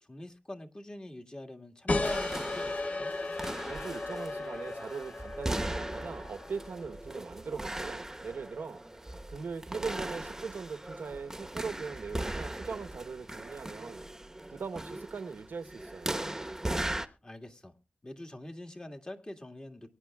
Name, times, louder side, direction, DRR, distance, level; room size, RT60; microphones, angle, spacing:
voice 1, 0.0-3.1 17.2-17.8 18.0-19.9, left 1 dB, 25° left, 1.8 m, -44 dB
sound 1, 1.9-7.1, left 2 dB, 50° left, 1.3 m, -35 dB
sound 2, 2.0-17.1, right 1 dB, 15° right, 1.0 m, -39 dB
voice 2, 3.7-8.8 9.3-14.0 14.5-16.1, right 5 dB, 80° right, 1.0 m, -40 dB
23.5 x 9.9 x 2.3 m
wide cardioid pair, 80°, 3 cm